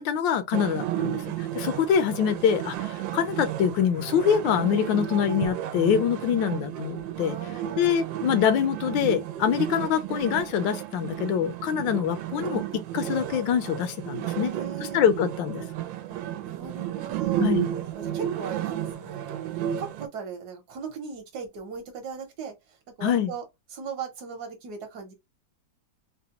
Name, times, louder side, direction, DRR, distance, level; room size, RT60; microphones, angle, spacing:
voice 1, 0.0-7.4 7.8-14.5 14.9-15.6 17.4-17.7 23.0-23.3, left 8 dB, 80° left, 1.3 m, -25 dB
sound 1, 0.5-20.1, right 12 dB, 85° right, 1.3 m, -32 dB
voice 2, 7.2-7.9 14.4-15.0 16.1-17.5 18.0-23.4 23.7-25.1, right 5 dB, 65° right, 1.3 m, -39 dB
3.9 x 2.1 x 2.8 m
omnidirectional pair, 2.0 m